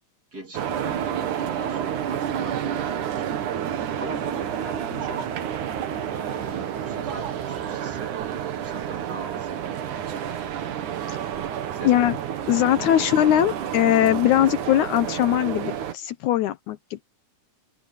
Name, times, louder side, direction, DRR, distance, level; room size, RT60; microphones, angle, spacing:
voice 1, 0.3-5.4 6.1-10.6 11.7-12.0 12.9-13.0, right 3 dB, 30° right, 3.5 m, -41 dB
sound 1, 0.5-15.9, right 9 dB, 70° right, 2.9 m, -30 dB
voice 2, 12.5-17.0, left 12 dB, 75° left, 2.1 m, -21 dB
omnidirectional pair, 3.7 m